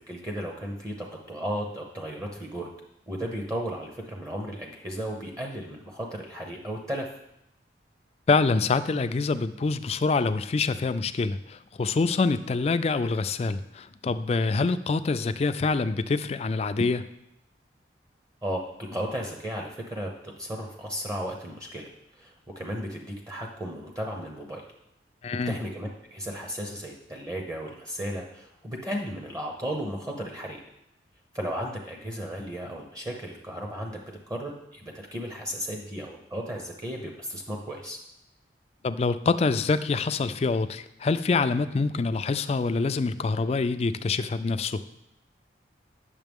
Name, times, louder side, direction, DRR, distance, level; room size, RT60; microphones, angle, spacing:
voice 1, 0.1-2.7 3.1-7.1 18.4-18.6 18.9-21.9 22.1-24.7 25.5-30.6 31.3-34.0 34.3-38.0, equal, 20° right, 1 dB, 0.8 m, -35 dB
voice 2, 8.3-17.1 25.2-25.5 38.8-44.8, left 4 dB, 35° left, 12 dB, 0.3 m, -25 dB
9.0 x 6.6 x 3.6 m, 0.82 s
head